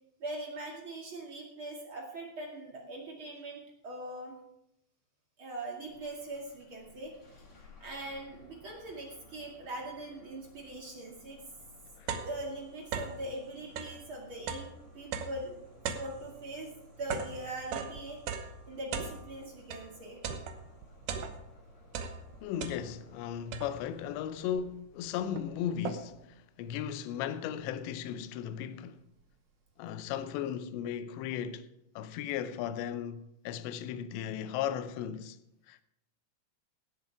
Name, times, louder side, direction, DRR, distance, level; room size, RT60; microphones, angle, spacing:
voice 1, 0.2-4.4 5.4-7.1 7.5-11.4 12.2-16.7 17.0-18.2 18.7-20.2, right 1 dB, 40° right, 2.1 m, -41 dB
Bus / Engine starting, 5.9-24.5, left 3 dB, 35° left, 3.0 m, -58 dB
sound 1, 11.2-11.3 11.6-13.3 13.6-19.9 20.2-21.6 21.9-23.1 23.5-24.0 24.7-24.8 25.0-26.3, right 6 dB, 85° right, 1.8 m, -39 dB
voice 2, 22.4-29.0 29.8-31.7 32.0-35.4 35.7-35.8, left 9 dB, 85° left, 2.9 m, -36 dB
18.0 x 7.0 x 4.8 m
omnidirectional pair, 5.1 m